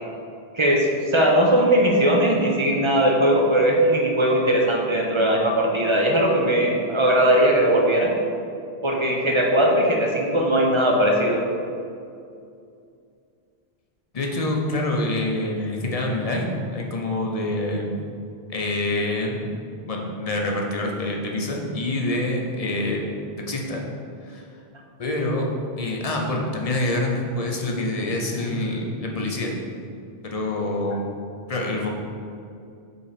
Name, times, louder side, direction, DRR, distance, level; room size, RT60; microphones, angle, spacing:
voice 1, 0.5-8.1 8.8-11.4, right 1 dB, 35° right, 0 dB, 0.6 m, -19 dB
voice 2, 14.1-18.0 18.5-19.5 19.9-23.0 23.5-23.8 24.2-24.5 25.0-25.5 25.8-29.5 30.2-31.1 31.5-31.9, left 1 dB, 40° left, 0 dB, 0.8 m, -26 dB
5.3 x 4.2 x 5.0 m, 2.4 s
omnidirectional pair, 1.0 m